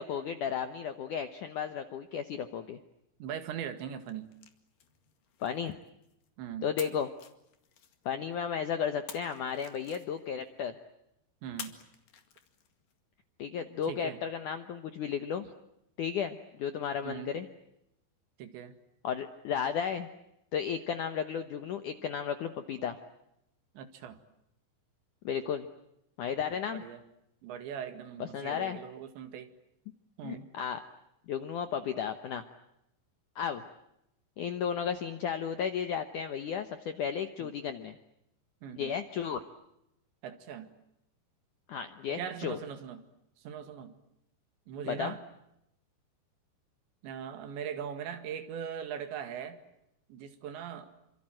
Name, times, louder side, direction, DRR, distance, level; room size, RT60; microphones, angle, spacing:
voice 1, 0.0-2.8 5.4-5.7 6.6-7.1 8.1-10.8 13.4-15.4 16.0-17.5 19.0-20.1 20.5-23.0 25.2-25.7 26.2-26.8 28.2-28.8 30.2-30.8 31.3-32.4 33.4-33.6 34.4-38.0 38.8-39.4 41.7-42.6 44.8-45.1, left 7 dB, 75° left, 9 dB, 1.9 m, -34 dB
voice 2, 3.2-4.3 6.4-6.7 11.4-11.7 13.9-14.2 17.0-17.3 18.4-18.7 23.8-24.2 26.7-27.0 27.4-29.5 30.2-30.5 37.4-37.5 38.6-38.9 40.2-40.7 42.1-43.0 43.4-43.9 44.7-45.2 47.0-49.6 50.1-50.9, right 8 dB, 75° right, 9 dB, 4.2 m, -40 dB
sound 1, 4.0-6.3 6.8-8.3 9.1-10.5 11.6-12.9, left 8 dB, 55° left, 3.3 m, -49 dB
28.5 x 26.0 x 7.6 m, 0.84 s
omnidirectional pair, 5.2 m